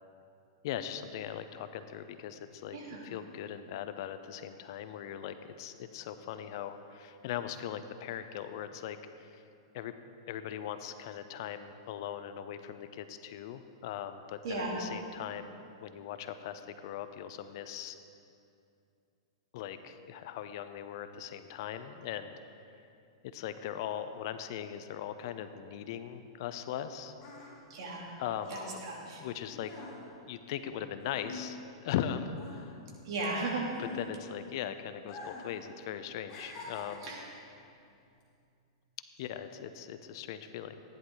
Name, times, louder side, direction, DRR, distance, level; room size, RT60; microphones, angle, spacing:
voice 1, 0.6-2.8 3.0-9.4 9.7-9.9 10.3-18.0 19.5-22.3 22.6-22.9 23.3-27.1 28.2-28.6 29.1-29.7 30.3-31.6 31.8-32.8 33.8-37.1 39.2-40.8, left 10 dB, 55° left, 10 dB, 0.6 m, -39 dB
voice 2, 2.7-3.1 14.4-14.8 27.7-28.1 28.5-29.2 33.0-33.6 37.0-37.2, right 3 dB, 65° right, -3 dB, 3.0 m, -36 dB
sound 1, 26.9-32.0 32.3-34.5 35.0-35.6 35.8-37.3 38.0-38.2, left 3 dB, 30° left, 3.1 m, -47 dB
14.5 x 10.5 x 4.0 m, 2.5 s
hypercardioid pair, 145°, 3 cm